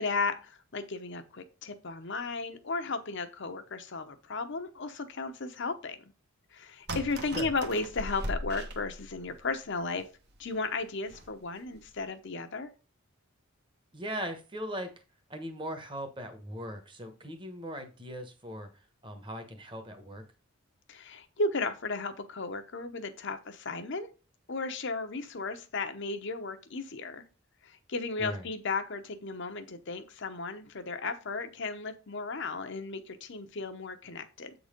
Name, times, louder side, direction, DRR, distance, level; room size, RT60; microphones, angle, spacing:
voice 1, 0.0-6.1 6.5-10.1 10.4-12.7 20.9-24.1 24.5-27.2 27.6-34.5, left 3 dB, 55° left, 9 dB, 0.8 m, -35 dB
sound 1, 6.9-9.4 10.0-10.1 10.4-10.5 11.1-11.4 11.7-12.0, right 1 dB, 50° right, 1.1 m, -39 dB
voice 2, 13.9-14.9 15.3-18.7 19.0-20.2 28.2-28.4, equal, 25° right, 7 dB, 1.1 m, -39 dB
7.9 x 4.0 x 5.1 m, 0.33 s
head